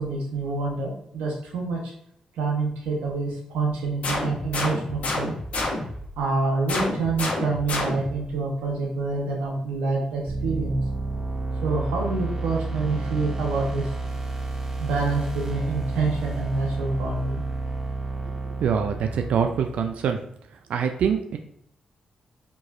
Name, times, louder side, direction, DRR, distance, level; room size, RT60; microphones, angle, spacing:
voice 1, 0.0-1.9 2.4-5.3 6.2-10.8 11.6-13.9 14.8-17.4, right 3 dB, 90° right, -2 dB, 1.0 m, -27 dB
sound 1, 4.0-6.1 6.7-8.3, left 2 dB, 70° left, 1.2 m, -29 dB
sound 2, 10.3-20.1, right 3 dB, 25° right, 0.8 m, -31 dB
voice 2, 18.6-20.2 20.7-21.4, right 7 dB, 75° right, 6 dB, 0.3 m, -24 dB
4.4 x 3.0 x 2.6 m, 0.70 s
supercardioid pair, 50°, 2 cm